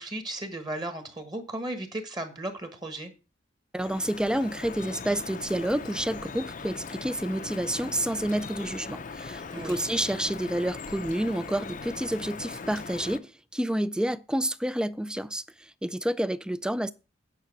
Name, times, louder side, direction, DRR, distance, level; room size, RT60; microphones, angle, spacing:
voice 1, 0.0-3.1 9.5-9.8, right 1 dB, 25° right, 1.3 m, -35 dB
voice 2, 3.7-16.9, right 1 dB, 5° right, 0.4 m, -29 dB
Drip, 3.8-13.2, left 4 dB, 45° left, 0.6 m, -40 dB
9.2 x 5.8 x 6.1 m
head